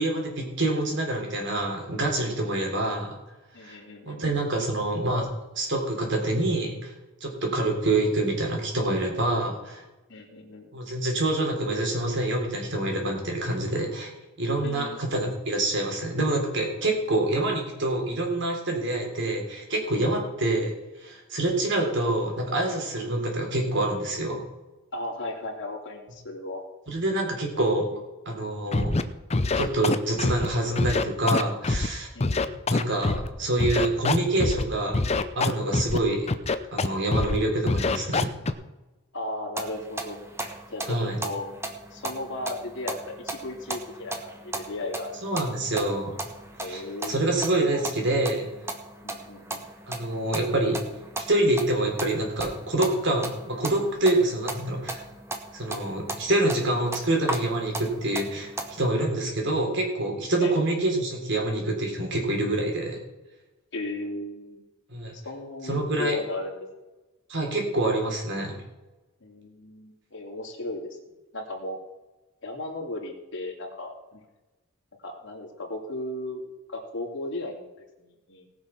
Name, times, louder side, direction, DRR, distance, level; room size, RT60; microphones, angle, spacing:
voice 1, 0.0-3.2 3.6-3.8 4.1-5.3 5.5-6.9 7.2-9.8 10.7-14.1 14.4-20.7 21.0-24.4 26.9-27.9 28.3-29.0 29.6-32.1 32.7-35.0 35.4-36.3 36.7-38.3 40.9-41.2 45.2-46.1 46.6-48.5 49.9-50.8 51.3-55.0 55.5-63.0 64.9-65.1 65.6-66.2 67.3-68.6, right 1 dB, 60° right, 1 dB, 3.5 m, -26 dB
voice 2, 3.5-4.2 7.5-7.6 10.1-10.7 14.6-15.2 20.0-20.1 24.9-26.6 32.1-32.4 39.1-40.2 40.7-41.5 41.9-45.2 46.6-47.3 47.7-47.9 49.0-49.6 60.4-60.5 63.7-64.6 65.1-66.7 69.2-71.0 71.3-71.8 72.4-74.2 75.0-76.4 76.7-77.7 78.0-78.5, left 1 dB, 55° left, -2 dB, 2.6 m, -36 dB
Scratching (performance technique), 28.7-29.0 29.3-30.5 30.8-31.9 32.2-33.3 33.6-34.6 34.9-36.0 36.3-36.9 37.1-37.4 37.7-38.5, left 3 dB, 30° left, 0.6 m, -24 dB
sound 1, 39.6-58.9, right 2 dB, 10° right, 1.2 m, -37 dB
18.5 x 6.4 x 5.9 m, 1.1 s
head